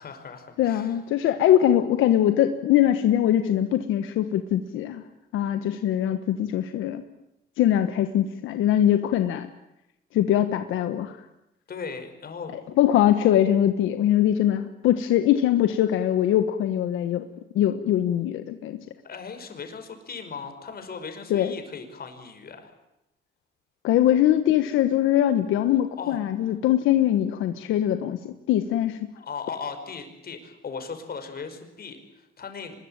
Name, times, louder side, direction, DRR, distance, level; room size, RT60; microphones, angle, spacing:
voice 1, 0.0-1.0 11.7-12.6 19.0-22.7 26.0-26.2 29.1-32.8, left 5 dB, 50° left, 7 dB, 5.4 m, -38 dB
voice 2, 0.6-5.0 5.3-7.0 7.6-9.5 10.1-11.2 12.8-17.3 17.5-18.8 21.3-21.5 23.8-29.1, left 11 dB, 90° left, 8 dB, 1.3 m, -22 dB
24.5 x 21.5 x 9.0 m, 0.86 s
cardioid pair, 90°, 20 cm